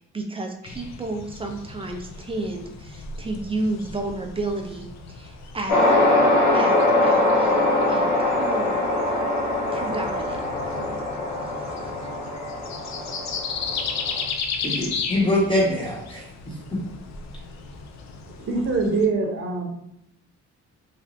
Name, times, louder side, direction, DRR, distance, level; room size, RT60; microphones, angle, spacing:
voice 1, 0.0-5.8 6.5-8.8 9.7-10.4 11.1-11.2 11.7-11.8, right 2 dB, 20° right, 3 dB, 0.4 m, -32 dB
sound 1, 0.6-19.1, left 5 dB, 65° left, 0.5 m, -36 dB
sound 2, 5.7-14.2, left 1 dB, 85° left, 1.0 m, -22 dB
voice 2, 14.6-16.8, left 1 dB, 15° left, -4 dB, 1.2 m, -24 dB
voice 3, 18.3-19.7, right 4 dB, 45° right, 1 dB, 0.8 m, -24 dB
3.2 x 2.4 x 2.6 m, 0.79 s
cardioid pair, 90°, 30 cm